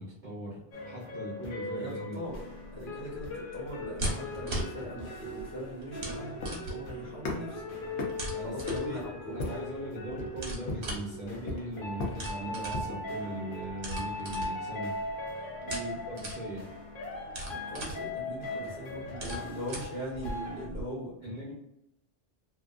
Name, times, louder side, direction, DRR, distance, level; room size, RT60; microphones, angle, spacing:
voice 1, 0.0-2.2 8.3-9.1 9.3-14.9 16.1-16.6 21.2-21.5, right 1 dB, 50° right, -6 dB, 0.7 m, -39 dB
sound 1, 0.7-20.7, left 2 dB, 55° left, 0.8 m, -39 dB
voice 2, 1.7-2.4 2.7-7.6 8.4-9.4 15.6-16.0 17.6-21.1, equal, 35° left, -7 dB, 1.2 m, -40 dB
sound 2, 2.2-20.8, right 1 dB, 70° right, 1.1 m, -41 dB
sound 3, 4.4-13.1, left 2 dB, 80° left, 0.9 m, -40 dB
2.7 x 2.4 x 2.3 m, 0.85 s
omnidirectional pair, 1.2 m